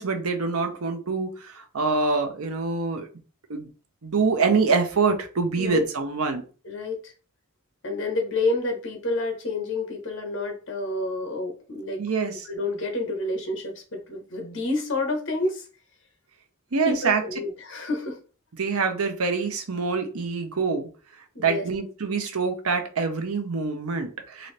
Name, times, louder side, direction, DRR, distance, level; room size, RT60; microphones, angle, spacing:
voice 1, 0.0-3.1 3.5-3.7 4.0-6.4 12.0-12.4 16.7-17.2 18.6-20.9 21.4-24.5, right 4 dB, 85° right, 5 dB, 0.8 m, -25 dB
voice 2, 6.6-7.1 7.8-12.0 12.4-15.7 16.8-18.2 21.3-21.6, left 2 dB, 60° left, 4 dB, 1.1 m, -29 dB
3.9 x 2.7 x 3.3 m, 0.36 s
head